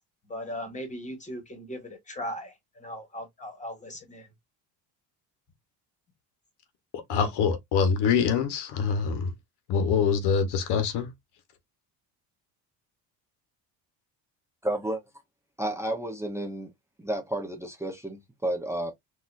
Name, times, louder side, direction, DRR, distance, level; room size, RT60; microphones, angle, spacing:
voice 1, 0.3-4.3, equal, 20° left, 1.6 m, -38 dB
voice 2, 6.9-9.3 9.7-11.1, left 6 dB, 75° left, 1.0 m, -25 dB
voice 3, 14.6-15.0 15.6-16.7 17.0-18.9, right 1 dB, 5° right, 0.8 m, -31 dB
4.0 x 2.6 x 2.4 m
cardioid pair, 140°, 40 cm